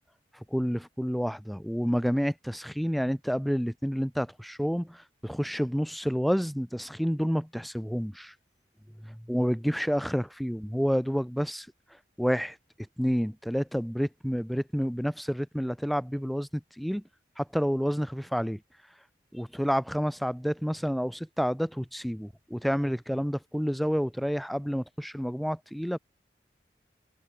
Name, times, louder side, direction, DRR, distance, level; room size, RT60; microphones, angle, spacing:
voice 1, 0.5-8.3 9.0-11.7 12.2-12.6 13.0-16.5 16.8-17.0 17.4-18.6 19.3-26.0, equal, ahead, 6.5 m, -29 dB
head